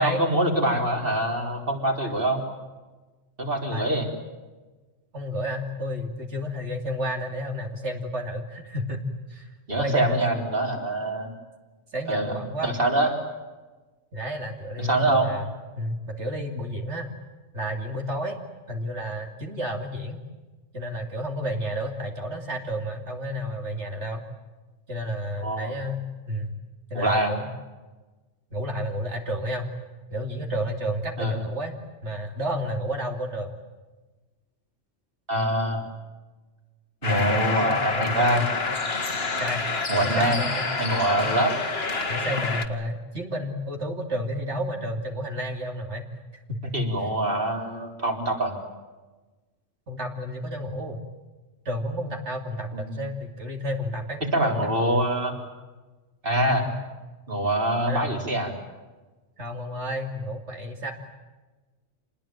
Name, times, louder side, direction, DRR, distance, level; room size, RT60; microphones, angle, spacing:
voice 1, 0.0-2.4 3.4-4.1 9.7-11.3 12.1-12.3 12.6-13.1 14.8-15.3 25.4-25.7 26.9-27.3 31.2-31.4 35.3-35.9 37.0-38.5 39.9-40.4 40.8-41.5 46.7-48.5 52.7-53.0 54.3-55.4 56.2-56.7 57.3-58.5, right 1 dB, 45° right, 2 dB, 4.1 m, -24 dB
voice 2, 5.1-9.0 9.3-10.2 11.9-12.7 14.1-17.1 17.5-18.4 18.7-20.2 20.7-24.2 24.9-26.5 26.9-27.5 28.5-29.7 30.1-31.7 32.0-33.5 37.1-38.3 39.4-39.6 40.0-40.8 41.2-41.3 42.1-46.1 46.5-46.7 49.9-51.0 51.6-55.1 56.5-56.7 57.9-58.1 59.4-60.9, equal, 65° right, 2 dB, 3.1 m, -31 dB
sound 1, 37.0-42.7, left 3 dB, 55° left, 2.0 m, -28 dB
27.5 x 20.5 x 9.1 m, 1.2 s
omnidirectional pair, 1.3 m